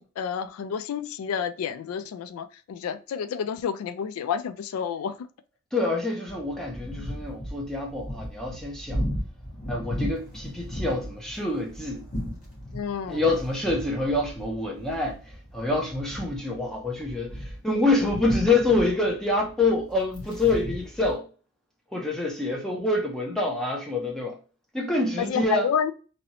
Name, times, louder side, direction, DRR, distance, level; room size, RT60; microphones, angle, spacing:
voice 1, 0.0-5.1 12.7-13.2 25.2-25.9, left 7 dB, 80° left, 0.3 m, -29 dB
voice 2, 5.7-9.0 9.7-12.0 13.1-15.2 15.5-21.3 21.9-24.4 24.7-25.7, left 2 dB, ahead, 0.5 m, -26 dB
sound 1, 6.3-21.1, equal, 40° left, 1.3 m, -36 dB
3.0 x 2.7 x 2.7 m
head